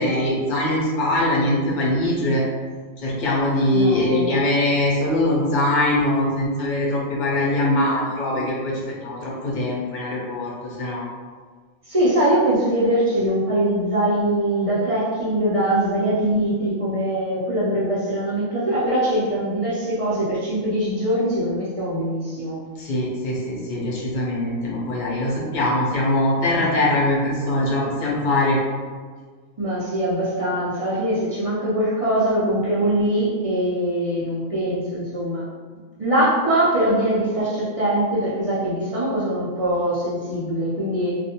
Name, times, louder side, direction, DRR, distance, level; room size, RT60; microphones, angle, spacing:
voice 1, 0.0-2.4 3.0-11.0 22.8-28.6, left 1 dB, 45° left, -5 dB, 0.7 m, -22 dB
voice 2, 3.7-4.3 11.9-22.6 29.6-35.4 36.0-41.2, right 1 dB, 45° right, -9 dB, 0.4 m, -22 dB
2.4 x 2.2 x 2.8 m, 1.5 s
omnidirectional pair, 1.4 m